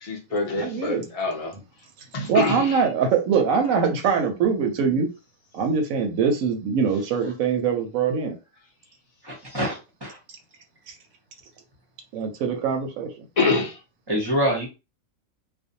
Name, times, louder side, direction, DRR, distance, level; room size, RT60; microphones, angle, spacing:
voice 1, 0.0-1.5 2.1-2.6 13.4-13.8, left 3 dB, 50° left, 0.4 m, -25 dB
voice 2, 0.5-1.1 1.5-1.6 2.0-5.1 5.5-8.4 10.9-11.0 12.1-13.3, right 6 dB, 75° right, 1.0 m, -23 dB
voice 3, 9.2-10.2 14.1-14.7, equal, 25° right, 0.6 m, -25 dB
2.5 x 2.0 x 2.7 m
omnidirectional pair, 1.4 m